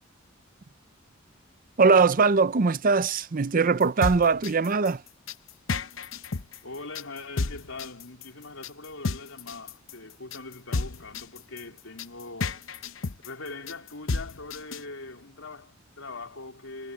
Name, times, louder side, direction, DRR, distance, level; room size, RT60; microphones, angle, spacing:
voice 1, 1.8-5.0, right 4 dB, 45° right, 0.6 m, -21 dB
sound 1, 3.8-14.8, left 3 dB, 70° left, 0.9 m, -32 dB
voice 2, 6.6-12.6 13.2-16.9, left 3 dB, 90° left, 4.0 m, -41 dB
head